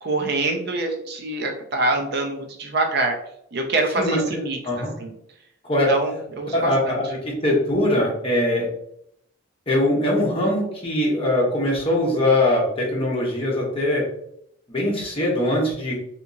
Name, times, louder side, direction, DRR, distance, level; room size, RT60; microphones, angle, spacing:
voice 1, 0.0-3.1 3.5-4.6 5.0-5.1 5.9-7.0, right 2 dB, 55° right, 3 dB, 0.5 m, -25 dB
voice 2, 6.5-8.7 9.7-14.0 14.7-16.0, left 1 dB, 30° left, -3 dB, 0.9 m, -22 dB
3.5 x 2.9 x 2.6 m, 0.73 s
head